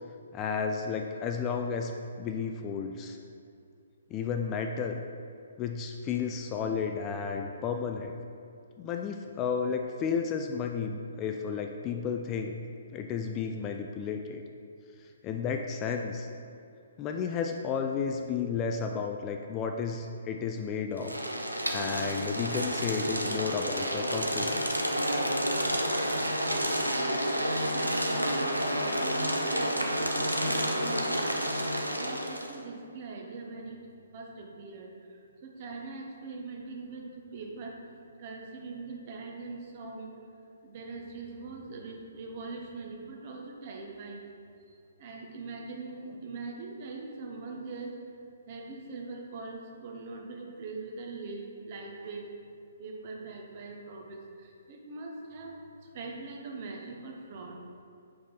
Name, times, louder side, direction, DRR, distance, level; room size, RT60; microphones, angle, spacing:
voice 1, 0.3-1.9 2.2-3.2 4.1-5.0 5.6-8.1 8.8-12.6 12.9-14.4 15.2-16.3 17.0-21.1 21.7-24.8, left 6 dB, 20° left, 4 dB, 0.3 m, -32 dB
sound 1, 21.0-32.5, equal, 90° right, 0.7 m, -30 dB
voice 2, 26.8-31.2 31.9-33.8 34.1-37.8 38.2-40.1 40.6-44.3 44.7-48.0 48.5-52.3 52.8-57.6, right 3 dB, 35° right, 0 dB, 0.9 m, -42 dB
6.0 x 5.0 x 4.0 m, 2.4 s
figure-of-eight pair, 130°, 0 cm